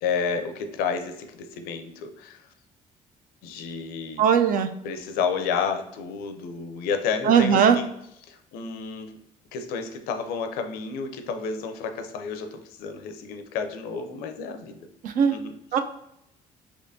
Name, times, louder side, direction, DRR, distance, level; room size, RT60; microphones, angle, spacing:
voice 1, 0.0-2.5 3.4-4.2 4.8-7.9 8.2-9.1 9.5-14.8 15.3-15.5, left 5 dB, 85° left, 7 dB, 0.5 m, -31 dB
voice 2, 4.2-4.7 7.2-7.8 15.0-15.4 15.7-15.8, right 7 dB, 60° right, 8 dB, 0.4 m, -19 dB
4.2 x 2.9 x 2.6 m, 0.77 s
supercardioid pair, 80°, 15 cm